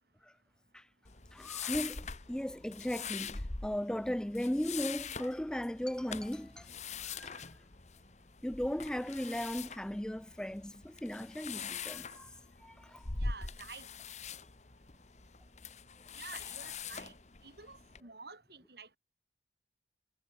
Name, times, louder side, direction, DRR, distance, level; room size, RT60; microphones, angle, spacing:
sound 1, 1.0-18.0, left 5 dB, 40° left, 1.4 m, -44 dB
voice 1, 1.3-6.7 7.0-7.4 8.4-12.3 12.6-13.1, equal, 5° left, 0.3 m, -37 dB
voice 2, 13.2-13.9 16.1-17.1 17.4-19.0, right 4 dB, 60° right, 5.7 m, -50 dB
head